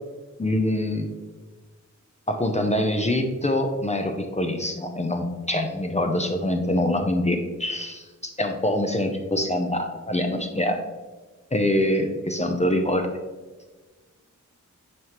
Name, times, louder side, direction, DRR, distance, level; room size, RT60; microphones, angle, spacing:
voice 1, 0.4-1.1 2.3-10.8 11.5-13.1, left 1 dB, 20° left, 4 dB, 0.6 m, -24 dB
9.4 x 3.6 x 3.0 m, 1.3 s
wide cardioid pair, 130°, 31 cm